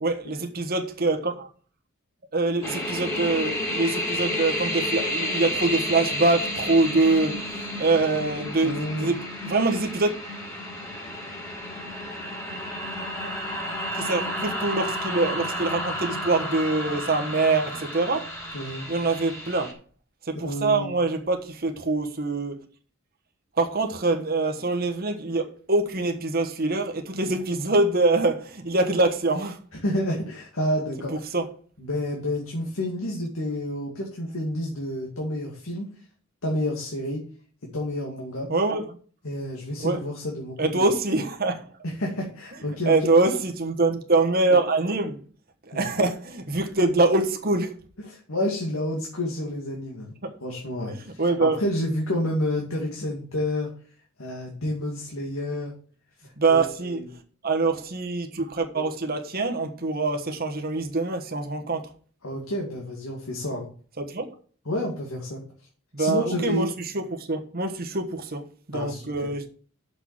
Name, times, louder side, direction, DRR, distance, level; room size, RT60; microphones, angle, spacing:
voice 1, 0.0-1.5 2.3-10.1 13.9-18.3 18.9-19.7 20.3-22.6 23.6-29.6 31.1-31.5 38.5-38.9 39.8-40.0 40.6-41.6 42.8-45.2 45.7-47.8 50.2-50.3 51.2-51.6 56.4-57.0 57.4-61.9 64.1-64.3 65.9-66.7 66.9-68.4 68.7-69.5, right 3 dB, 45° right, 1.3 m, -24 dB
sound 1, 2.6-19.7, left 1 dB, 15° left, 2.8 m, -31 dB
voice 2, 8.6-9.2 18.5-18.9 20.3-21.0 29.8-31.1 31.8-35.9 36.4-37.2 37.7-38.5 39.2-40.7 41.8-43.1 45.7-45.9 48.0-50.1 50.4-53.7 54.2-55.7 56.5-57.1 62.2-63.7 64.7-65.4 66.0-66.6 68.7-69.0, left 1 dB, 75° left, 2.2 m, -29 dB
6.7 x 6.3 x 7.5 m
head